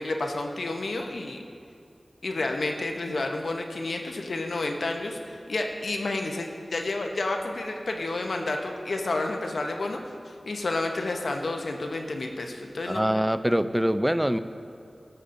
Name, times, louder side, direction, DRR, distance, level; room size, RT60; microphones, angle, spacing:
voice 1, 0.0-1.4 2.2-10.0 10.3-13.0, left 2 dB, 85° left, 3 dB, 0.7 m, -30 dB
voice 2, 12.9-14.4, equal, 10° right, 11 dB, 0.4 m, -24 dB
15.0 x 6.6 x 2.6 m, 2.4 s
cardioid pair, 45°, 0 cm